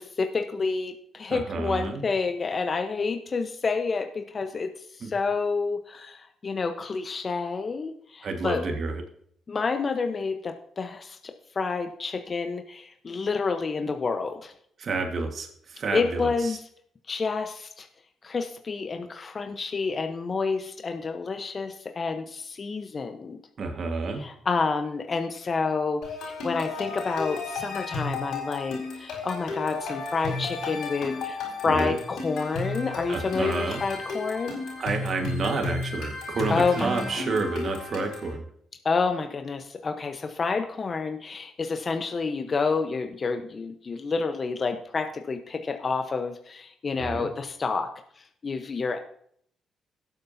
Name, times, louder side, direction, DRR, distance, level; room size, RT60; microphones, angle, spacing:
voice 1, 0.0-4.7 5.0-8.6 9.5-14.5 15.9-16.6 17.1-17.9 18.2-23.4 24.2-34.6 36.5-37.2 38.8-47.9 48.4-49.0, left 4 dB, 45° left, 6 dB, 1.0 m, -29 dB
voice 2, 1.3-2.1 5.0-5.1 8.2-9.0 14.8-16.6 23.6-24.3 31.6-32.0 33.1-33.8 34.8-38.4 47.0-47.3, right 3 dB, 55° right, 4 dB, 1.6 m, -30 dB
sound 1, 26.0-38.3, left 3 dB, 80° left, 4.5 m, -33 dB
17.5 x 7.8 x 2.8 m, 0.65 s
supercardioid pair, 55°, 0 cm